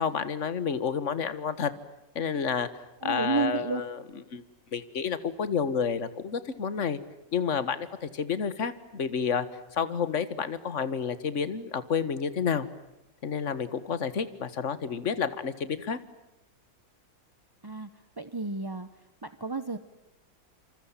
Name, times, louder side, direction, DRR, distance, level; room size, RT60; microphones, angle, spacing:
voice 1, 0.0-1.7 2.2-2.7 3.0-4.0 4.3-4.4 4.7-7.0 7.3-9.5 9.7-12.7 13.2-16.0, left 6 dB, 45° left, 14 dB, 1.7 m, -30 dB
voice 2, 3.0-3.8 17.6-17.9 18.2-18.9 19.2-19.8, right 4 dB, 20° right, 11 dB, 0.6 m, -31 dB
27.5 x 27.0 x 7.4 m, 0.96 s
omnidirectional pair, 1.9 m